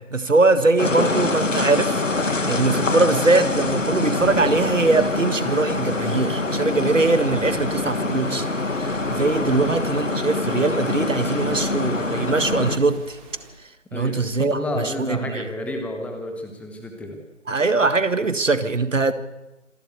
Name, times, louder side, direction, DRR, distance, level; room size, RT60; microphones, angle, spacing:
voice 1, 0.0-8.5 8.7-13.2 13.9-15.4 17.5-19.1, right 3 dB, 80° right, 12 dB, 1.9 m, -22 dB
sound 1, 0.8-12.8, left 3 dB, 80° left, 2.2 m, -25 dB
sound 2, 1.0-13.5, right 3 dB, 30° right, 4.6 m, -44 dB
voice 2, 14.5-17.2, left 1 dB, 5° left, 3 dB, 1.6 m, -31 dB
26.5 x 12.5 x 8.1 m, 1.0 s
figure-of-eight pair, 145°, 38 cm